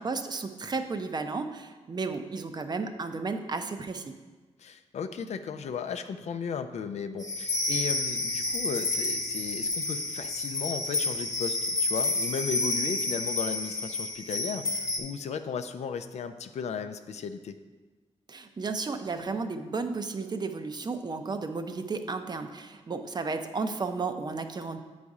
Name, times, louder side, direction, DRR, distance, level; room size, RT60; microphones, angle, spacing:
voice 1, 0.0-4.1 18.3-24.8, right 4 dB, 35° right, 7 dB, 0.6 m, -33 dB
voice 2, 4.6-17.6, left 6 dB, 70° left, 9 dB, 0.5 m, -35 dB
sound 1, 7.2-15.0, left 2 dB, 25° left, 1.1 m, -30 dB
8.7 x 4.1 x 4.8 m, 1.3 s
cardioid pair, 95°, 12 cm